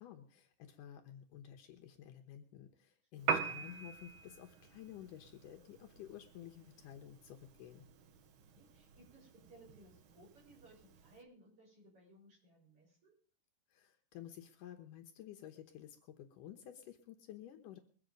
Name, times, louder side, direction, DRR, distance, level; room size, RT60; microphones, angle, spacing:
voice 1, 0.0-7.9 13.7-17.8, left 11 dB, 75° left, 4 dB, 2.6 m, -52 dB
voice 2, 3.1-3.6 8.5-13.1, right 1 dB, 40° right, -2 dB, 7.0 m, -62 dB
Piano, 3.2-11.2, right 6 dB, 80° right, 1.1 m, -44 dB
22.5 x 7.9 x 5.2 m, 0.43 s
omnidirectional pair, 3.8 m